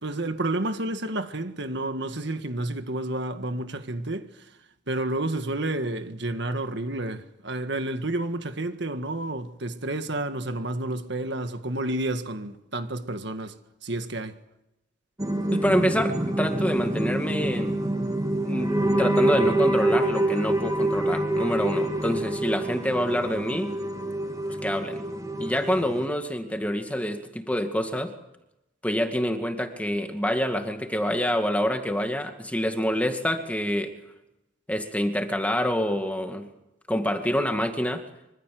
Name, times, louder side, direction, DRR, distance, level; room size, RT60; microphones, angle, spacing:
voice 1, 0.0-4.3 4.9-13.5 13.8-14.3, right 1 dB, 60° right, 1.8 m, -30 dB
sound 1, 15.2-26.1, right 1 dB, 20° right, 2.4 m, -26 dB
voice 2, 15.5-18.1 18.4-23.7 24.6-25.0 25.4-28.1 28.8-33.9 34.7-36.5 36.9-38.0, equal, 5° left, 2.1 m, -27 dB
25.5 x 24.5 x 7.8 m
head